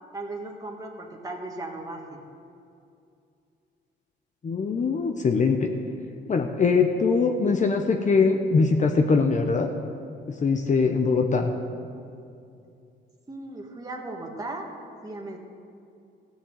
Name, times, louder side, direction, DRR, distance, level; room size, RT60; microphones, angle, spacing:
voice 1, 0.1-2.2 13.3-14.7 15.0-15.4, right 2 dB, 20° right, 0 dB, 1.7 m, -36 dB
voice 2, 4.4-5.7 6.3-9.7 10.4-11.5, left 4 dB, 40° left, 4 dB, 0.9 m, -22 dB
15.0 x 7.1 x 7.9 m, 2.5 s
cardioid pair, 90°, 20 cm